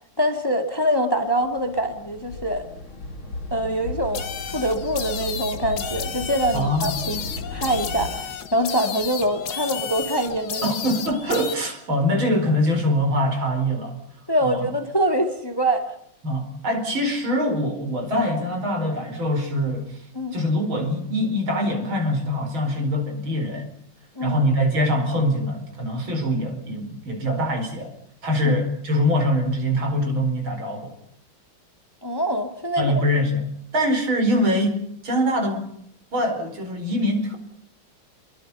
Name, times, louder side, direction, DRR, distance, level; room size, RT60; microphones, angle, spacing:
voice 1, 0.2-2.6 3.5-4.2 4.5-8.3 8.5-10.7 14.3-15.8 20.1-20.4 24.2-24.4 28.4-28.6 32.0-32.9, equal, 10° left, 5 dB, 2.0 m, -24 dB
sound 1, 1.2-8.1, left 1 dB, 80° left, 6.2 m, -35 dB
sound 2, 4.1-11.6, left 8 dB, 55° left, 1.7 m, -33 dB
voice 2, 6.5-7.0 10.6-13.9 14.4-14.7 16.2-20.0 20.3-23.7 24.2-27.9 28.2-31.0 32.8-33.5 33.7-34.8 35.0-35.7 36.1-37.4, equal, 75° right, 5 dB, 5.5 m, -23 dB
28.0 x 23.0 x 5.6 m, 0.70 s
omnidirectional pair, 2.2 m